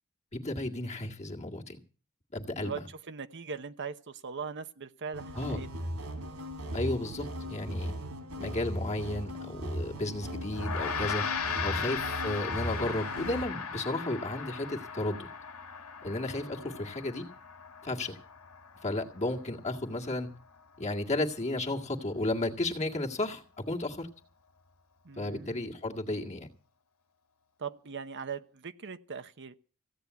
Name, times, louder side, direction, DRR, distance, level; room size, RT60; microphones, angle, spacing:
voice 1, 0.3-1.8 2.3-2.8 5.3-5.6 6.7-7.9 8.4-11.2 11.6-15.3 16.0-17.3 17.8-18.2 18.8-20.3 20.8-24.1 25.2-26.5, left 2 dB, 30° left, 2.0 m, -33 dB
voice 2, 2.5-5.9 11.7-12.0 16.6-16.8 25.0-25.7 27.6-29.5, right 6 dB, 55° right, 0.9 m, -41 dB
sound 1, 5.1-13.4, equal, 85° right, 3.7 m, -38 dB
Gong, 10.5-20.2, left 6 dB, 80° left, 1.9 m, -37 dB
16.0 x 8.9 x 8.2 m
head